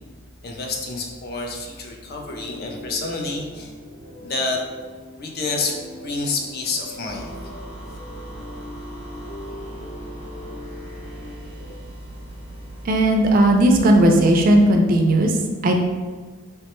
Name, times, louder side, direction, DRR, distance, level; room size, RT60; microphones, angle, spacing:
voice 1, 0.4-3.7 4.2-4.6 5.2-7.3, left 3 dB, 45° left, 2 dB, 0.4 m, -28 dB
sound 1, 2.1-11.7, equal, 70° left, 1.0 m, -41 dB
sound 2, 7.1-14.6, right 1 dB, 10° left, 0.8 m, -38 dB
voice 2, 12.8-15.8, right 1 dB, 40° right, 3 dB, 0.3 m, -16 dB
3.2 x 2.1 x 2.9 m, 1.4 s
head